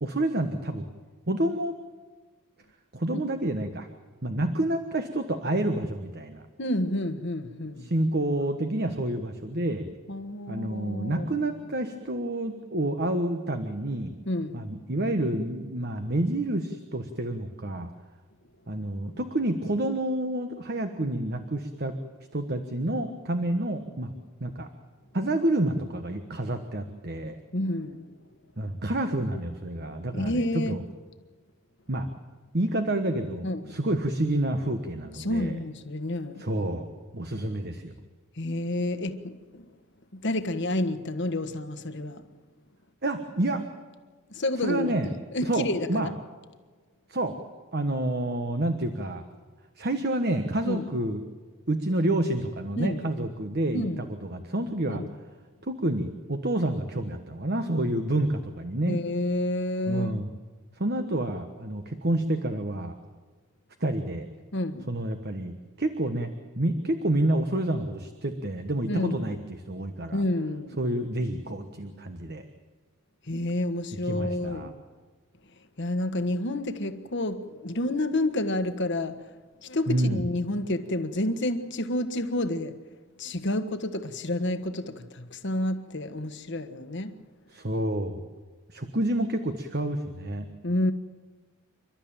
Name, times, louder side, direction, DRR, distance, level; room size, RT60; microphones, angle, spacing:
voice 1, 0.0-0.8 1.3-1.7 2.9-3.9 4.2-6.4 7.8-9.9 10.5-14.1 14.5-17.9 18.7-21.9 22.3-24.1 24.4-24.7 25.1-27.4 28.6-30.8 31.9-32.1 32.5-35.6 36.4-36.9 37.1-37.9 43.0-43.6 44.6-45.1 45.4-46.1 47.1-47.3 47.7-49.2 49.8-51.2 51.7-55.0 55.6-59.0 59.9-60.3 60.7-62.9 63.8-64.3 64.9-70.2 70.8-72.5 74.0-74.7 79.9-80.2 87.5-88.2 88.7-90.5, right 1 dB, 45° right, 1.3 m, -28 dB
voice 2, 6.6-7.9 10.1-11.4 14.3-14.6 27.5-28.1 30.1-30.8 33.4-33.8 35.2-36.5 38.4-39.7 40.2-42.2 44.3-46.1 50.7-50.8 52.8-53.1 53.7-54.1 54.9-55.1 58.9-60.2 64.5-64.9 68.9-69.3 70.1-70.8 73.3-74.7 75.8-79.2 79.6-82.7 83.2-87.1 90.6-90.9, left 1 dB, 55° left, 1.5 m, -29 dB
29.0 x 12.5 x 8.9 m
head